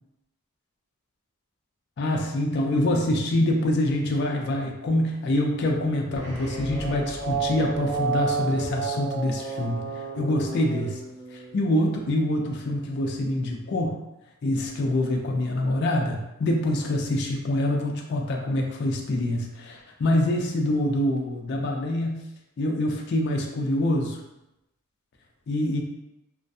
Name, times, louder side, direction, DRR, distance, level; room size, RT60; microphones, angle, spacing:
voice 1, 2.0-11.0 11.3-14.0 14.4-22.2 22.6-24.2 25.5-25.8, left 1 dB, 50° left, 1 dB, 0.3 m, -25 dB
sound 1, 6.1-11.6, right 4 dB, 55° right, 0.7 m, -31 dB
2.4 x 2.1 x 2.6 m, 0.91 s
head